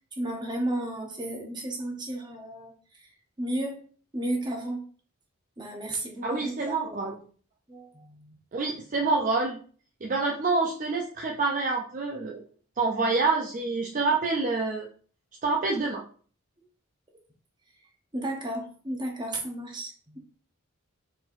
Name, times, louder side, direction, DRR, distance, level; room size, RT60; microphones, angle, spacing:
voice 1, 0.1-3.8 4.1-4.8 5.6-7.1 7.7-8.3 18.1-20.2, right 1 dB, 20° right, 1 dB, 0.9 m, -33 dB
voice 2, 6.2-7.1 8.5-9.6 10.0-12.4 12.8-14.9 15.4-16.0, right 3 dB, 35° right, 0 dB, 0.4 m, -27 dB
4.4 x 4.2 x 2.5 m, 0.44 s
head